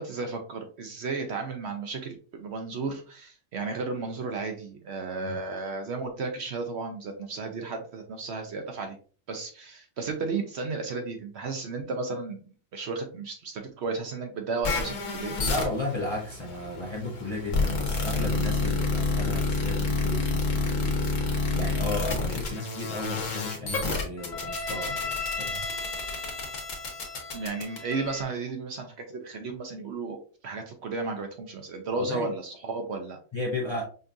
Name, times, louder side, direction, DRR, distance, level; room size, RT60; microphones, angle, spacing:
voice 1, 0.0-9.0 9.3-12.4 12.7-15.4 27.3-30.2 30.4-33.2, right 3 dB, 60° right, 5 dB, 0.8 m, -33 dB
sound 1, 14.6-28.2, left 3 dB, 75° left, 1.3 m, -29 dB
voice 2, 15.4-25.7 31.9-32.3 33.3-33.8, left 2 dB, 30° left, -2 dB, 0.6 m, -34 dB
5.2 x 2.4 x 2.5 m, 0.39 s
omnidirectional pair, 1.4 m